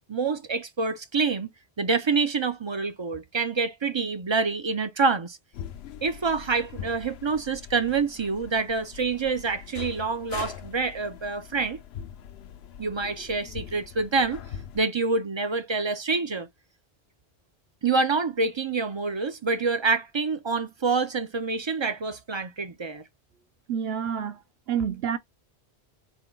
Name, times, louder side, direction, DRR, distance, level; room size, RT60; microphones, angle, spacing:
voice 1, 0.1-1.5 1.8-5.4 6.0-11.8 12.8-14.4 14.7-16.5 17.8-23.0, right 4 dB, 40° right, 0.4 m, -27 dB
sound 1, 5.5-14.8, left 9 dB, 75° left, 0.8 m, -42 dB
voice 2, 23.7-24.4 24.7-25.2, right 8 dB, 70° right, 0.8 m, -28 dB
4.4 x 2.2 x 3.7 m
omnidirectional pair, 1.1 m